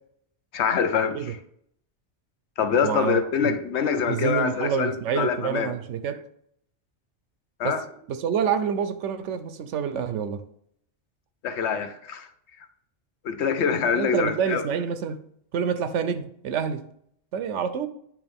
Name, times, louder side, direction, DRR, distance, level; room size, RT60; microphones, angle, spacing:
voice 1, 0.5-1.4 2.6-5.7 7.6-7.8 11.4-12.3 13.2-14.6, left 6 dB, 75° left, 1.0 m, -25 dB
voice 2, 2.8-3.6 4.0-6.2 7.6-7.8 8.1-10.4 13.9-15.2 15.5-16.8 17.3-17.9, right 7 dB, 90° right, 1.0 m, -27 dB
8.6 x 3.2 x 3.5 m
omnidirectional pair, 1.2 m